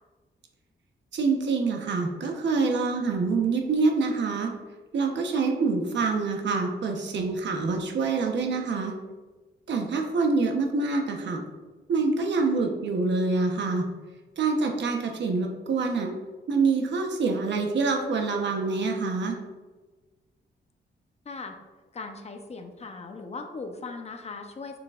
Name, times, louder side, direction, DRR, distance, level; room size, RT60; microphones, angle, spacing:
voice 1, 1.1-4.5 4.9-8.9 9.7-11.4 11.9-13.8 14.4-16.1 16.5-19.4, right 4 dB, 70° right, 3 dB, 1.0 m, -26 dB
voice 2, 21.2-21.6 21.9-24.8, left 4 dB, 35° left, 5 dB, 0.8 m, -38 dB
6.8 x 6.6 x 2.5 m, 1.3 s
wide cardioid pair, 120°, 19 cm